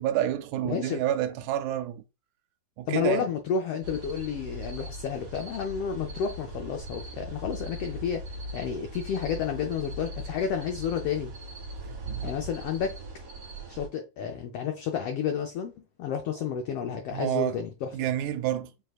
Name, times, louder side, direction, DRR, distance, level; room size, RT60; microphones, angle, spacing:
voice 1, 0.0-2.0 2.8-3.3 12.1-12.3 17.1-17.6 17.9-18.7, right 12 dB, 85° right, 1.9 m, -29 dB
voice 2, 0.6-1.0 2.9-11.3 12.2-13.0 13.7-15.7 16.0-17.9, left 7 dB, 85° left, 1.3 m, -31 dB
sound 1, 3.8-13.9, right 1 dB, 45° right, 1.7 m, -40 dB
6.3 x 3.5 x 2.4 m
omnidirectional pair, 3.5 m